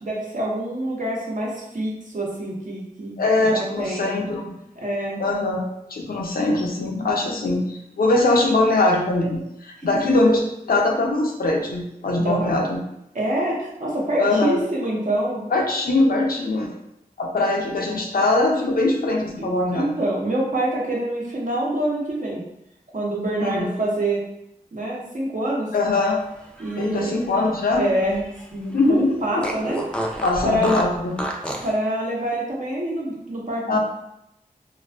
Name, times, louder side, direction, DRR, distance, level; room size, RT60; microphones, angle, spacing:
voice 1, 0.0-4.2 4.8-5.2 12.2-12.6 13.1-15.4 19.4-22.4 22.9-24.2 24.7-25.7 26.6-27.1 27.7-28.2 28.5-30.8 31.6-33.8, right 1 dB, 55° right, -4 dB, 0.8 m, -26 dB
voice 2, 3.2-4.5 5.2-12.8 14.2-14.6 15.5-16.7 17.2-20.0 23.4-23.7 25.7-26.2 26.8-27.9 28.7-29.5 30.2-31.2 33.7-33.8, left 2 dB, 75° left, 0 dB, 0.4 m, -22 dB
Fart, 26.4-28.5 28.8-28.9 29.4-31.8, equal, 5° left, 0.3 m, -31 dB
2.4 x 2.3 x 2.2 m, 0.82 s
wide cardioid pair, 55°, 15 cm